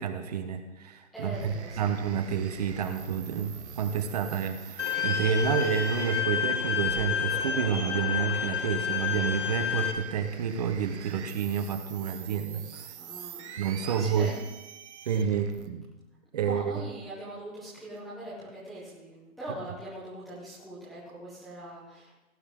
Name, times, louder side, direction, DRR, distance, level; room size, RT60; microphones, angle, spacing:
voice 1, 0.0-12.9 13.6-14.3 15.1-15.9 16.3-16.7, right 7 dB, 30° right, 8 dB, 0.8 m, -29 dB
voice 2, 1.1-1.9 12.9-13.5 13.8-14.4 15.0-15.3 16.4-22.2, right 1 dB, ahead, -12 dB, 0.5 m, -42 dB
sound 1, 1.3-15.7, right 8 dB, 50° right, 1.0 m, -45 dB
Bowed string instrument, 4.8-9.9, left 8 dB, 55° left, 1.4 m, -30 dB
17.0 x 9.8 x 3.6 m, 1.0 s
hypercardioid pair, 150°, 43 cm